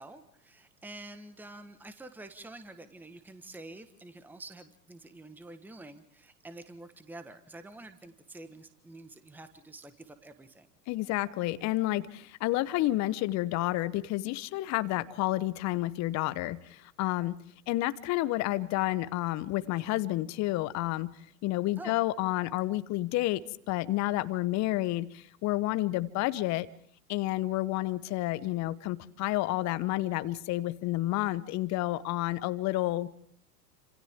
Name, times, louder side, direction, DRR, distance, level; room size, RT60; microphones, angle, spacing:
voice 1, 0.0-10.7 21.8-22.0, right 2 dB, 5° right, 10 dB, 1.4 m, -48 dB
voice 2, 10.9-23.4 23.7-26.7 27.1-33.1, left 17 dB, 35° left, 15 dB, 1.0 m, -30 dB
29.5 x 27.0 x 3.7 m, 0.65 s
figure-of-eight pair, 95°, 48 cm